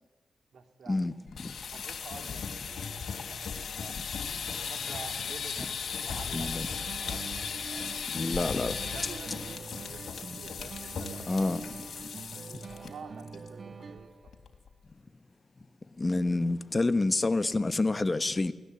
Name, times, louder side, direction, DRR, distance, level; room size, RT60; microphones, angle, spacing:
voice 1, 0.5-1.1 1.7-4.0 4.7-7.9 8.3-14.3, right 6 dB, 75° right, 2.8 m, -49 dB
sound 1, 1.3-12.9 13.2-13.5 13.8-13.9 14.3-14.7, left 6 dB, 70° left, 3.3 m, -37 dB
voice 2, 6.3-6.7 8.1-8.7 11.3-11.6 16.0-18.5, left 2 dB, 30° left, 1.3 m, -28 dB
sound 2, 6.4-14.4, right 4 dB, 55° right, 1.8 m, -45 dB
29.0 x 19.5 x 8.3 m
cardioid pair, 60°, 0 cm